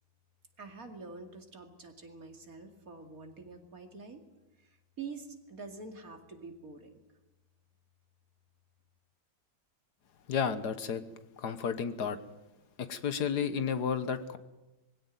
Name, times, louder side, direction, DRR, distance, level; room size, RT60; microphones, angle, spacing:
voice 1, 0.6-4.2 4.6-7.0, right 4 dB, 55° right, 5 dB, 2.8 m, -46 dB
voice 2, 10.3-11.0 11.4-12.2 12.8-14.4, left 7 dB, 70° left, 12 dB, 1.7 m, -32 dB
21.5 x 16.5 x 9.2 m, 1.1 s
omnidirectional pair, 1.9 m